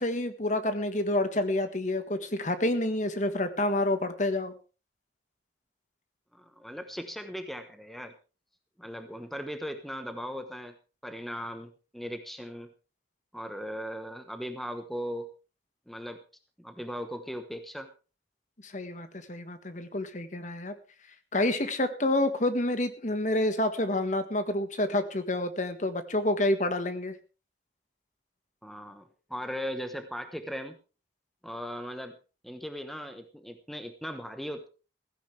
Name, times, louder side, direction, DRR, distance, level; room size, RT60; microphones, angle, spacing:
voice 1, 0.0-4.5 18.6-20.7 21.3-27.1, left 1 dB, 40° left, 10 dB, 1.5 m, -28 dB
voice 2, 6.3-8.1 8.8-10.7 11.0-12.7 13.3-15.3 15.9-16.2 16.6-17.9 28.6-30.8 31.4-32.2 32.4-34.7, equal, ahead, 7 dB, 1.1 m, -38 dB
15.5 x 15.5 x 3.4 m, 0.34 s
head